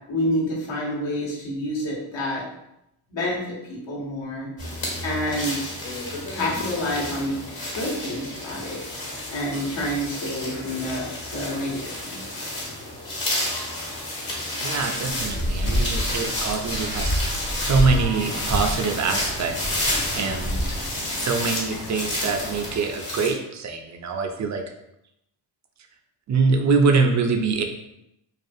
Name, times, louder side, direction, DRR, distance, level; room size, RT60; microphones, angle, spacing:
voice 1, 0.1-2.4 3.1-4.5 5.0-5.8 6.3-7.4 7.7-8.8 9.3-12.5, left 1 dB, 65° left, -4 dB, 1.1 m, -28 dB
sound 1, 4.6-23.3, left 1 dB, 45° left, 1.3 m, -31 dB
voice 2, 14.6-17.2 17.6-19.8 20.1-20.6 21.2-24.6 26.3-27.6, right 4 dB, 40° right, 5 dB, 0.4 m, -24 dB
sound 2, 14.7-22.8, left 1 dB, 85° left, 1.1 m, -41 dB
sound 3, 15.1-20.9, equal, 25° left, 0.4 m, -28 dB
2.4 x 2.3 x 2.6 m, 0.82 s
supercardioid pair, 60°, 48 cm